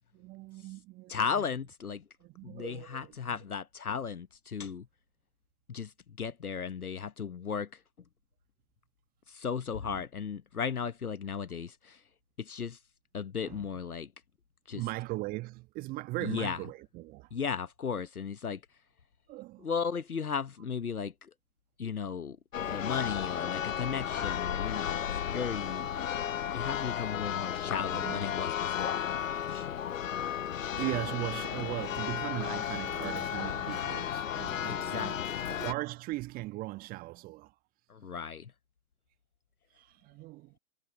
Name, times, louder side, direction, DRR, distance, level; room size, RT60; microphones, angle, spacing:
voice 1, 0.1-1.5 2.2-3.3 9.8-10.0 13.4-13.7 14.7-17.3 19.3-19.7 27.8-28.3 30.8-35.2 35.5-37.5 39.7-40.6, right 20 dB, 20° right, 1.4 m, -39 dB
voice 2, 1.1-2.0 2.4-4.9 5.7-7.8 9.3-12.0 12.4-12.8 13.1-14.1 14.7-14.8 16.2-16.6 17.3-18.6 19.6-21.3 21.8-25.9 26.5-29.7 34.7-35.5 37.9-38.5, left 6 dB, 75° left, 1.2 m, -36 dB
Church bell, 22.5-35.7, left 9 dB, 60° left, 0.8 m, -34 dB
figure-of-eight pair, 120°, 45 cm